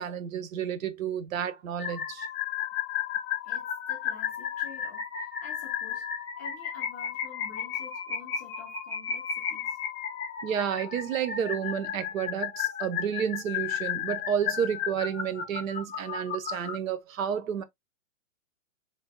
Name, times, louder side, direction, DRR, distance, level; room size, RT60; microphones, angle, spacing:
voice 1, 0.0-2.3 10.4-17.6, right 8 dB, 80° right, 0.8 m, -31 dB
sound 1, 1.8-16.8, left 8 dB, 50° left, 1.0 m, -34 dB
voice 2, 3.4-6.1 6.4-9.8, left 4 dB, 15° left, 0.4 m, -49 dB
3.4 x 2.1 x 2.6 m
hypercardioid pair, 165°, 40 cm